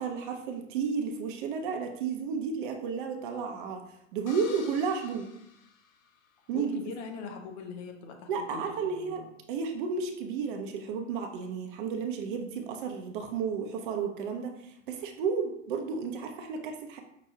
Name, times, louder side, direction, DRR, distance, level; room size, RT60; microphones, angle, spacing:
voice 1, 0.0-3.8 4.1-5.3 6.5-6.8 8.3-17.0, right 5 dB, 40° right, 4 dB, 0.6 m, -32 dB
sound 1, 4.3-6.5, left 6 dB, 90° left, 0.5 m, -50 dB
voice 2, 6.5-9.3, left 5 dB, 35° left, 4 dB, 0.6 m, -42 dB
5.8 x 2.2 x 2.8 m, 0.78 s
figure-of-eight pair, 105°, 39 cm